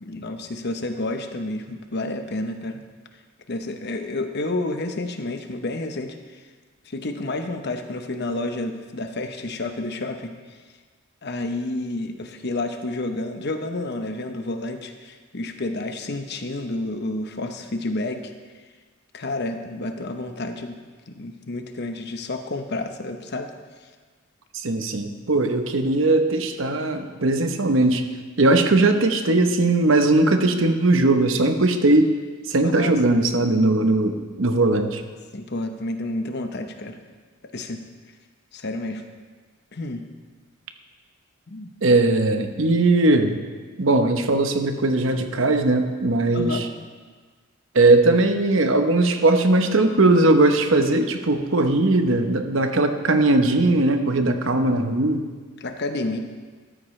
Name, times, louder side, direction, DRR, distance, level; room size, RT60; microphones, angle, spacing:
voice 1, 0.0-2.8 3.5-6.2 6.8-10.3 11.2-18.3 19.1-23.5 32.6-33.2 35.3-37.0 37.5-37.8 38.5-39.0 39.7-40.1 41.5-41.7 46.3-46.7 55.6-56.2, left 2 dB, 50° left, 6 dB, 0.9 m, -30 dB
voice 2, 24.5-28.0 28.4-32.1 32.5-35.0 41.8-43.4 43.8-46.7 47.7-55.3, right 2 dB, 65° right, 7 dB, 0.9 m, -19 dB
13.5 x 13.0 x 3.3 m, 1.5 s
head